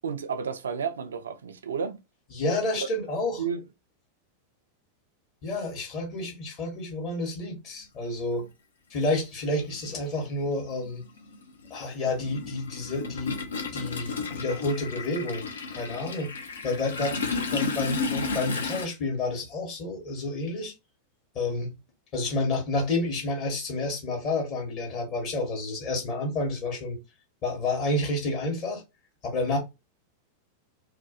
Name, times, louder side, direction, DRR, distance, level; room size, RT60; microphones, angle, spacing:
voice 1, 0.0-2.0 2.8-2.9 3.4-3.6 17.0-17.2, right 6 dB, 70° right, 0.3 m, -32 dB
voice 2, 2.3-3.4 5.4-8.5 8.9-11.0 11.7-13.4 13.7-16.3 16.6-17.2 17.5-20.7 21.3-21.7 22.1-27.0 27.4-28.8 29.2-29.6, left 2 dB, 40° left, 1.0 m, -30 dB
Toilet flush, 8.4-8.5 9.7-9.9 10.2-18.9, left 4 dB, 70° left, 0.5 m, -33 dB
2.4 x 2.2 x 2.5 m
figure-of-eight pair, 90°, 0 cm